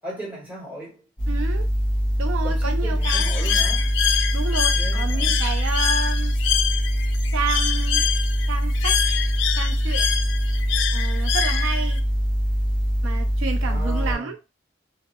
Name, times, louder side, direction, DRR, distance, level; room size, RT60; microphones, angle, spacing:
voice 1, 0.0-1.1 2.4-3.9 4.7-5.4 13.6-14.3, right 1 dB, 10° right, 1.1 m, -37 dB
sound 1, 1.2-14.2, equal, 20° left, 0.8 m, -23 dB
voice 2, 1.3-1.7 2.2-3.6 4.3-6.4 7.3-8.0 8.5-9.0 9.6-10.1 10.9-12.0 13.0-14.4, right 4 dB, 80° right, 0.4 m, -30 dB
Bird, 3.0-12.0, left 9 dB, 65° left, 0.3 m, -26 dB
2.2 x 2.0 x 2.8 m
head